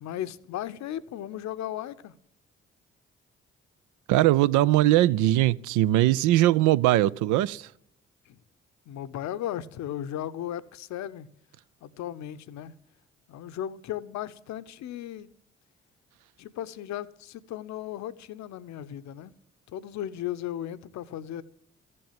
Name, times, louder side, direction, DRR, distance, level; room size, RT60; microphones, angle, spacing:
voice 1, 0.0-2.2 8.3-8.4 8.9-11.3 11.8-12.7 13.3-15.3 16.4-19.3 19.7-21.4, left 11 dB, 60° left, 0.7 m, -36 dB
voice 2, 4.1-7.7, right 15 dB, 70° right, 0.5 m, -21 dB
14.0 x 7.7 x 7.3 m
hypercardioid pair, 45°, 32 cm